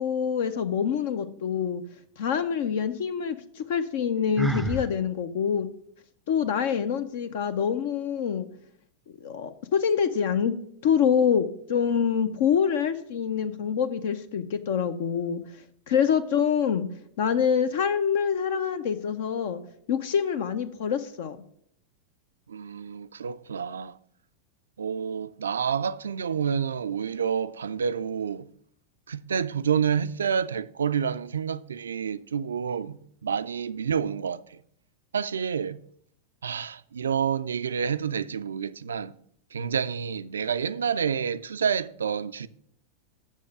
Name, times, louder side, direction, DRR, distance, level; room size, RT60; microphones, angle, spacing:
voice 1, 0.0-1.8 2.2-5.7 6.3-8.5 9.2-10.5 10.8-15.4 15.9-16.9 17.2-19.6 19.9-21.4, left 7 dB, 55° left, 0.6 m, -26 dB
Sigh, 4.4-4.9, right 2 dB, 5° right, 0.5 m, -27 dB
voice 2, 22.5-24.0 24.8-28.5 29.1-34.6 35.1-35.8 36.4-39.1 39.5-42.5, right 7 dB, 70° right, 0.3 m, -29 dB
7.3 x 6.3 x 7.3 m
figure-of-eight pair, 90°, 0 cm